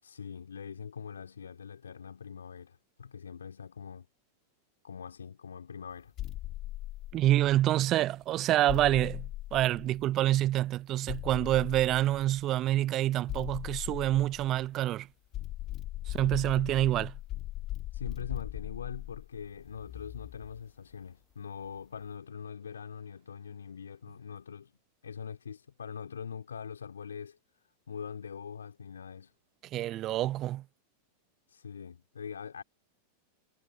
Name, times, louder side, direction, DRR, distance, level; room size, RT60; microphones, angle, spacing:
voice 1, 0.0-4.1 4.8-6.1 17.9-27.4 27.9-29.3 31.5-32.6, left 7 dB, 75° left, 6.3 m, -43 dB
sound 1, 6.2-7.7 8.7-10.3 11.1-12.4 13.3-14.9 15.3-20.6, left 15 dB, 40° left, 3.9 m, -40 dB
voice 2, 7.1-15.1 16.1-17.1 29.7-30.6, right 14 dB, 35° right, 0.5 m, -27 dB
figure-of-eight pair, 90°, 0 cm